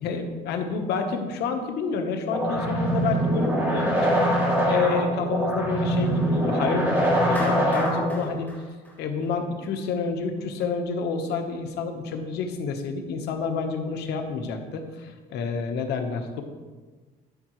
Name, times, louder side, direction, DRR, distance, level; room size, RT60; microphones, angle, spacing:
voice 1, 0.0-8.5 9.0-16.4, left 5 dB, 80° left, 5 dB, 1.2 m, -29 dB
sound 1, 2.3-8.3, right 1 dB, 10° right, 2.8 m, -23 dB
Clapping, 7.3-9.6, equal, 10° left, 2.0 m, -38 dB
13.0 x 5.6 x 3.2 m, 1.3 s
cardioid pair, 110°, 17 cm